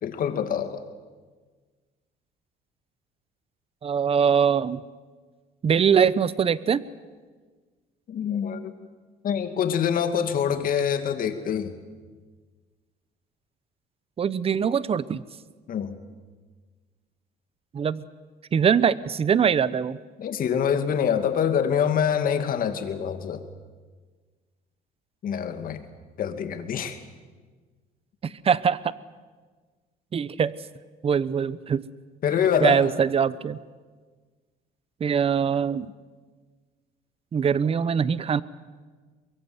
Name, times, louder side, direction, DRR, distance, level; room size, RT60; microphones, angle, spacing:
voice 1, 0.0-0.8 8.1-8.7 9.2-11.7 15.7-15.9 20.2-23.4 25.2-25.9 26.2-27.0 32.2-32.8, left 8 dB, 55° left, 7 dB, 2.4 m, -25 dB
voice 2, 3.8-4.8 5.6-6.8 14.2-15.2 17.7-18.1 18.5-20.0 28.2-28.9 30.1-30.5 31.0-31.9 32.6-33.6 35.0-35.9 37.3-38.4, right 7 dB, 35° right, 17 dB, 0.9 m, -22 dB
23.0 x 23.0 x 8.0 m, 1.4 s
cardioid pair, 110°, 17 cm